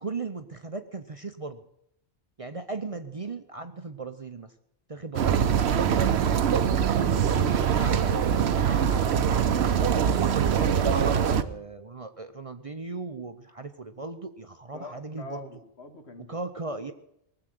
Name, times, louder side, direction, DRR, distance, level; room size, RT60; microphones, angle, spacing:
voice 1, 0.0-1.6 2.4-4.5 4.9-5.5 6.9-15.5 16.2-16.9, right 3 dB, 35° right, 8 dB, 0.7 m, -37 dB
sound 1, 5.1-11.4, right 8 dB, 70° right, 1.0 m, -23 dB
voice 2, 14.7-16.3, left 3 dB, 70° left, 5 dB, 2.0 m, -45 dB
19.5 x 7.9 x 7.7 m, 0.78 s
omnidirectional pair, 1.2 m